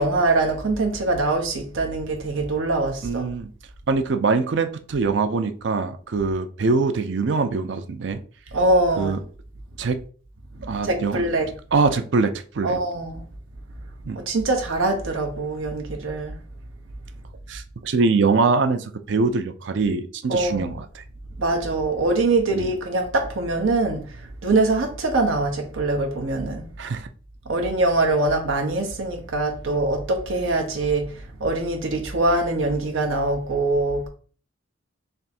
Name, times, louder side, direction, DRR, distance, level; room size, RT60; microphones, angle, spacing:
voice 1, 0.0-3.2 8.5-9.2 10.6-11.5 12.6-13.2 14.1-16.3 20.3-20.8 21.4-26.6 27.5-34.1, right 2 dB, 85° right, 0.8 m, -23 dB
voice 2, 3.0-3.5 3.9-8.2 9.0-9.2 9.8-10.0 10.7-11.2 11.7-12.8 14.0-14.2 17.5-21.0 22.5-22.7 26.8-27.1, right 4 dB, 65° right, 0.4 m, -23 dB
3.4 x 2.6 x 4.2 m
head